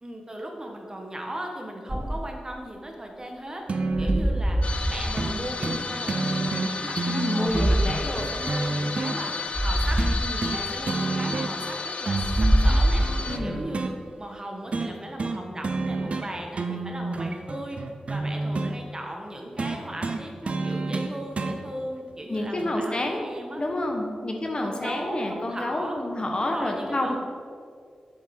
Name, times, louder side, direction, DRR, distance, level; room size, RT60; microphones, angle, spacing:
voice 1, 0.0-3.6 4.0-4.6 4.8-9.3 9.6-13.1 13.4-17.8 18.1-23.6 24.6-26.0 26.4-27.2, right 1 dB, 30° right, 1 dB, 1.5 m, -37 dB
sound 1, 1.9-2.4 3.9-5.5 7.5-8.1 9.5-10.3 12.2-13.6, right 1 dB, 5° right, 0.4 m, -24 dB
sound 2, 3.7-4.3 5.2-5.3 5.6-5.8 6.1-9.2 10.0-10.6 10.9-11.7 12.1-13.9 14.7-14.9 15.2-15.4 15.6-16.3 16.5-18.7 19.6-21.6 22.6-22.7, right 3 dB, 60° right, 0.7 m, -29 dB
sound 3, 4.6-13.4, left 4 dB, 60° left, 0.6 m, -33 dB
voice 2, 7.1-8.3 13.3-13.6 22.3-23.3 23.6-27.2, left 1 dB, 40° left, 2 dB, 1.2 m, -29 dB
7.7 x 6.8 x 4.5 m, 2.2 s
cardioid pair, 55°, 2 cm